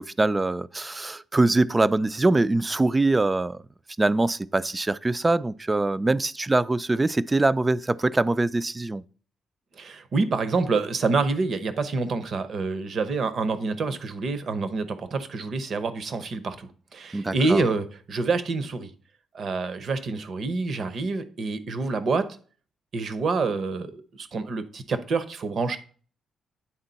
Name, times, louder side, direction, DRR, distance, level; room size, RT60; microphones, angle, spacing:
voice 1, 0.0-3.6 4.0-9.0 17.1-17.6, right 2 dB, 20° right, 0.3 m, -23 dB
voice 2, 9.8-18.9 19.3-22.3 22.9-25.8, right 3 dB, 55° right, 0.8 m, -27 dB
8.8 x 3.7 x 4.0 m
cardioid pair, 90°, 0 cm